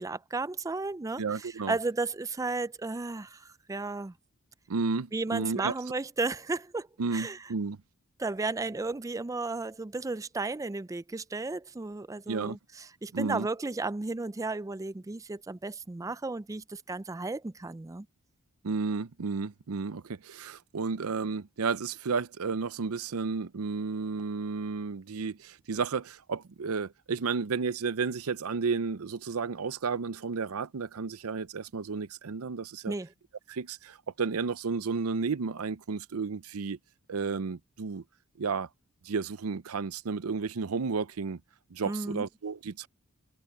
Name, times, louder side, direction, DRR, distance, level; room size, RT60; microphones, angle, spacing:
voice 1, 0.0-4.1 5.1-6.9 7.1-7.4 8.2-18.1 32.9-33.1 41.9-42.3, right 3 dB, 15° right, 0.4 m, -34 dB
voice 2, 1.2-1.8 4.7-5.7 7.0-7.8 12.3-12.6 13.1-13.5 18.6-32.9 33.5-36.8 37.1-38.0 38.4-38.7 39.0-41.4 41.7-42.9, right 4 dB, 90° right, 0.6 m, -32 dB
head